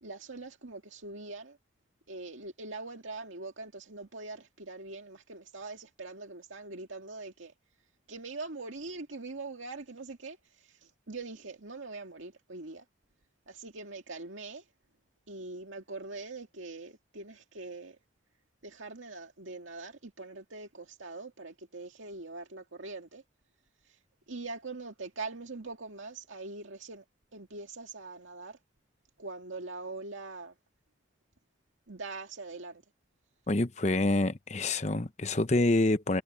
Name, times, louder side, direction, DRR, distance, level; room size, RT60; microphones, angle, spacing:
voice 1, 0.0-1.6 2.1-7.5 8.1-12.9 13.5-14.7 15.3-18.0 18.6-23.2 23.8-24.0 24.3-27.0 27.3-28.6 29.2-30.6 31.9-32.8, right 3 dB, 90° right, 2.1 m, -43 dB
voice 2, 33.5-36.2, left 2 dB, 35° left, 0.8 m, -27 dB
head